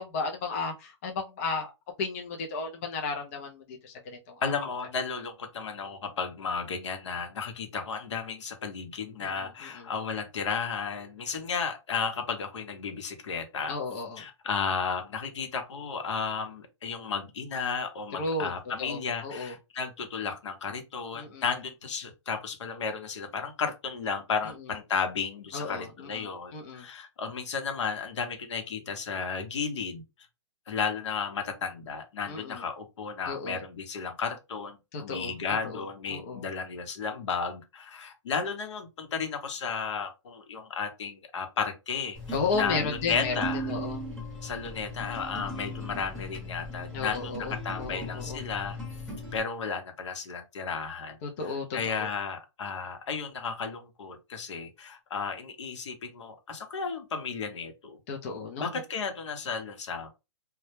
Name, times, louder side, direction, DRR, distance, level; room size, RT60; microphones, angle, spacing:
voice 1, 0.0-1.7 2.0-4.4 9.2-9.3 9.7-9.9 13.7-14.2 18.2-18.5 18.8-19.5 21.2-21.4 25.5-26.3 26.5-26.8 32.3-32.6 33.3-33.6 34.9-35.3 35.6-35.8 36.1-36.4 42.3-43.3 43.7-44.0 46.9-48.4 51.2-52.1 58.1-58.7, left 4 dB, 30° left, 0.3 m, -33 dB
voice 2, 4.4-13.8 14.2-30.0 30.7-43.7 44.4-48.8 49.3-58.0 58.6-60.1, left 5 dB, 70° left, 0.7 m, -33 dB
sound 1, 42.1-49.4, equal, 5° left, 0.8 m, -38 dB
2.1 x 2.0 x 3.0 m
hypercardioid pair, 160°, 16 cm